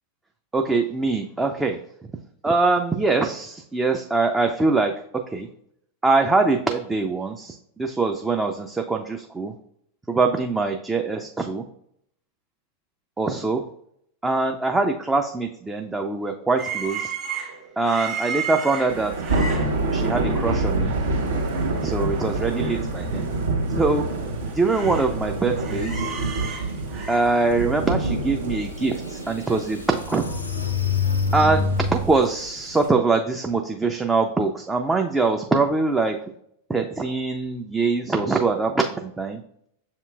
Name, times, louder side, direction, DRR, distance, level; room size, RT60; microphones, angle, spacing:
voice 1, 0.5-1.8 2.4-4.9 5.3-5.5 6.0-9.5 10.1-11.6 13.2-13.6 14.2-17.1 17.8-19.1 19.9-21.0 21.8-23.3 23.8-24.1 24.5-26.1 27.1-30.2 31.3-31.6 31.9-36.2 36.7-39.4, right 3 dB, 10° right, 3 dB, 0.3 m, -23 dB
sound 1, 16.6-20.4 20.8-21.0 21.3-22.8 23.1-23.2 23.8-25.1 25.4-27.2, right 6 dB, 30° right, 1.0 m, -34 dB
Thunder / Rain, 18.9-32.9, right 2 dB, 65° right, 0.8 m, -27 dB
sound 2, 28.4-28.5 29.1-32.2, left 4 dB, 80° left, 0.6 m, -26 dB
6.8 x 2.9 x 2.2 m, 0.72 s
figure-of-eight pair, 90°, 0 cm